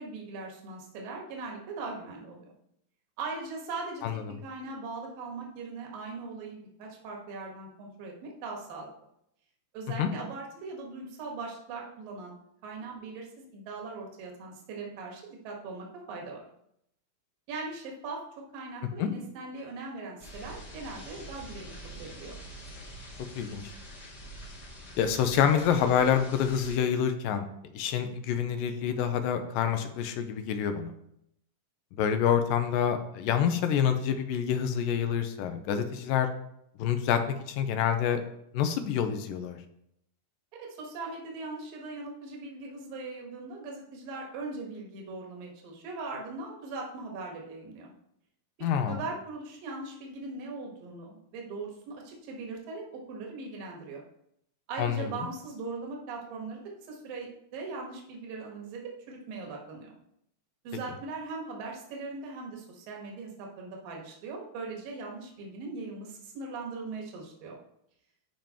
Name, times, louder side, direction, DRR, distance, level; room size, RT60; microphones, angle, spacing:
voice 1, 0.0-2.4 3.2-4.0 4.4-8.9 9.7-12.3 12.6-16.4 17.5-18.2 18.5-22.4 40.5-47.9 48.6-54.0 54.7-56.6 56.9-58.8 59.1-60.0 60.6-67.6, right 3 dB, 80° right, -1 dB, 3.2 m, -40 dB
voice 2, 4.0-4.4 10.0-10.1 19.0-19.1 23.4-23.6 25.0-27.4 27.7-30.9 32.0-36.3 36.8-37.2 37.5-38.2 38.5-39.6 48.6-49.0 54.8-55.1, left 8 dB, 85° left, 8 dB, 2.4 m, -27 dB
sound 1, 20.2-26.8, equal, 40° left, 1.5 m, -45 dB
14.5 x 5.3 x 3.0 m, 0.75 s
omnidirectional pair, 4.0 m